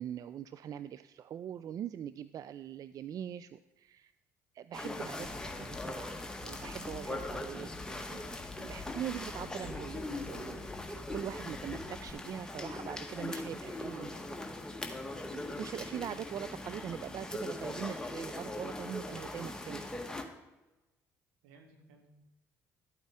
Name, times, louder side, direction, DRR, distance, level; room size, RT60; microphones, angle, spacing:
voice 1, 0.0-4.1 4.5-8.3 8.6-14.1 15.3-19.8, right 9 dB, 50° right, 14 dB, 0.3 m, -42 dB
sound 1, 4.7-20.2, left 2 dB, 10° left, 1.4 m, -41 dB
sound 2, 5.2-12.1, left 5 dB, 40° left, 1.1 m, -50 dB
voice 2, 7.7-8.3 12.4-12.8 13.5-13.6 13.9-14.5 21.4-22.1, right 3 dB, 80° right, 3 dB, 1.7 m, -59 dB
12.5 x 8.8 x 3.6 m, 1.1 s
hypercardioid pair, 55°, 8 cm